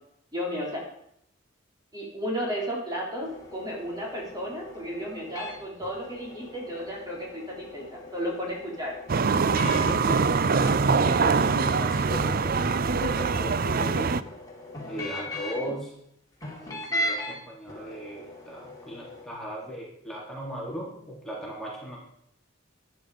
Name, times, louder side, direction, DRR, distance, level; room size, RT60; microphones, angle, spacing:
voice 1, 0.3-0.8 1.9-8.9 15.6-15.7, equal, 20° right, -3 dB, 4.2 m, -33 dB
sound 1, 3.2-10.0 10.5-15.7 16.4-17.4 17.7-19.2, equal, 20° left, 4.8 m, -39 dB
sound 2, 9.1-14.2, right 4 dB, 50° right, 0.5 m, -23 dB
voice 2, 9.5-10.2 10.9-14.1 14.9-15.9 16.7-22.0, equal, ahead, -5 dB, 3.8 m, -37 dB
14.5 x 12.0 x 5.2 m, 0.71 s
head